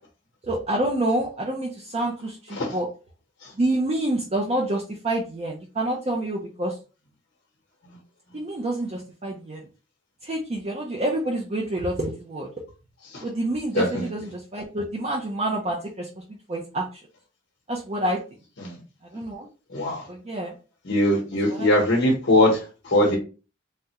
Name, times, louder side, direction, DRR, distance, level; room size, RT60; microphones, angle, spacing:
voice 1, 0.4-2.9 3.6-6.8 8.3-9.6 10.2-12.5 13.2-16.1 16.5-16.9 17.7-18.2 19.1-19.5 20.1-20.5 21.5-21.7, right 1 dB, 30° right, -1 dB, 0.4 m, -27 dB
voice 2, 13.7-14.1 18.6-18.8 19.7-20.0 20.8-23.2, left 1 dB, 65° left, -2 dB, 0.8 m, -21 dB
3.5 x 2.1 x 2.8 m, 0.33 s
head